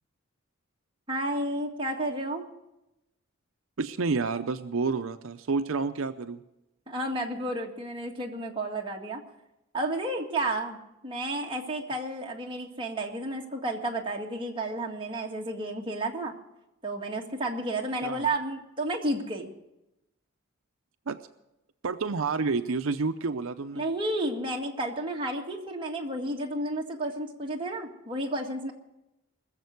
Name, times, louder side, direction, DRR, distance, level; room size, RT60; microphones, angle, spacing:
voice 1, 1.1-2.4 6.9-9.2 9.7-10.8 11.0-16.3 16.8-19.5 23.7-28.7, right 1 dB, 25° right, 0 dB, 1.8 m, -31 dB
voice 2, 3.8-6.4 18.0-18.3 21.1-21.2 21.8-23.9, right 4 dB, 75° right, 10 dB, 0.6 m, -29 dB
20.5 x 7.4 x 8.1 m, 0.91 s
head